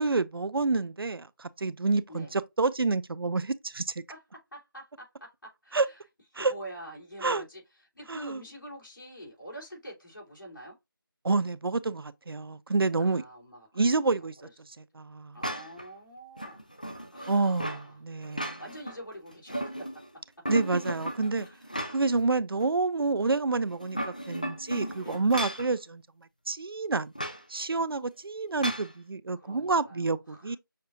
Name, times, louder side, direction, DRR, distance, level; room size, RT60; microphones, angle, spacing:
voice 1, 0.0-4.0 5.7-5.9 6.4-6.5 7.2-7.4 8.1-8.4 11.2-13.2 13.8-14.4 14.8-15.4 17.3-18.6 20.5-21.5 21.9-26.0 26.5-27.1 27.5-30.6, right 3 dB, 85° right, 0.4 m, -28 dB
voice 2, 4.1-6.0 6.3-10.8 13.0-14.5 15.3-16.6 17.1-18.0 18.6-19.9 20.1-20.2 21.4-21.7 25.0-25.2 29.4-30.6, right 1 dB, 65° left, 3.0 m, -46 dB
sound 1, 15.4-15.9 16.4-17.9 18.2-19.0 19.3-20.1 20.5-22.2 22.6-22.7 23.7-25.7 27.2-27.4 28.6-28.9, equal, 20° left, 0.4 m, -35 dB
6.5 x 2.6 x 2.6 m
figure-of-eight pair, 170°, 12 cm